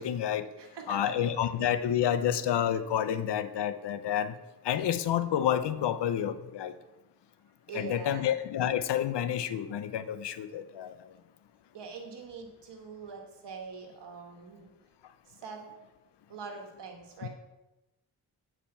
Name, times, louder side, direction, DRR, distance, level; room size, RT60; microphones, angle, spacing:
voice 1, 0.0-0.5 0.9-4.3 4.6-6.7 7.7-11.0 17.2-17.3, left 10 dB, 80° left, 12 dB, 0.7 m, -29 dB
voice 2, 0.6-1.1 7.7-8.3 11.7-14.7 15.3-15.7 16.3-17.3, right 5 dB, 80° right, 3 dB, 1.5 m, -43 dB
8.5 x 5.0 x 5.5 m, 1.0 s
cardioid pair, 60°, 41 cm